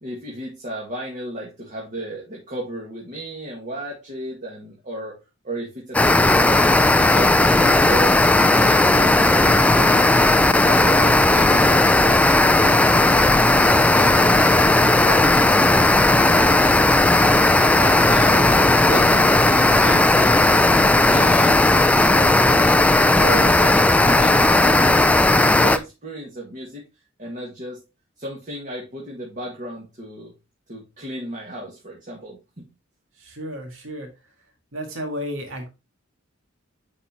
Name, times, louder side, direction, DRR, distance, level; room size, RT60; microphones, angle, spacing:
voice 1, 0.0-5.1 5.4-6.6 6.9-10.1 10.6-12.2 12.6-13.3 13.7-15.7 16.3-16.8 17.5-22.7 23.1-26.8 27.2-27.8 28.2-30.3 30.7-32.7, right 1 dB, 40° right, -2 dB, 1.8 m, -33 dB
sound 1, 5.9-25.8, left 2 dB, 5° left, 0.3 m, -16 dB
voice 2, 33.2-34.1 34.7-35.7, equal, 75° right, 3 dB, 1.9 m, -32 dB
9.7 x 4.2 x 2.9 m, 0.27 s
head